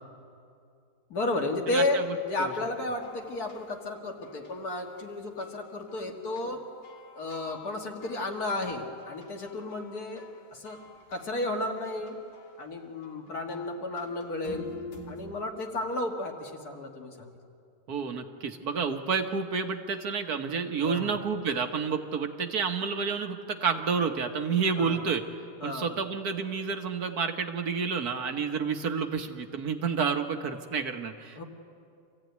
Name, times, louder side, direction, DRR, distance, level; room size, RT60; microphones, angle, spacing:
voice 1, 1.1-6.6 7.1-10.2 10.5-10.8 11.1-12.2 12.6-14.7 15.1-17.4 20.8-21.2 24.8-25.1 25.6-26.0 28.5-28.7 31.4-31.5, left 2 dB, 65° left, 2 dB, 2.4 m, -33 dB
voice 2, 1.7-2.0 17.9-25.2 25.6-31.4, right 5 dB, 65° right, 6 dB, 1.7 m, -30 dB
sound 1, 2.3-5.1 5.4-6.5 6.8-12.6 13.0-15.3, left 3 dB, 80° left, 2.6 m, -49 dB
26.5 x 15.5 x 9.3 m, 2.5 s
omnidirectional pair, 1.8 m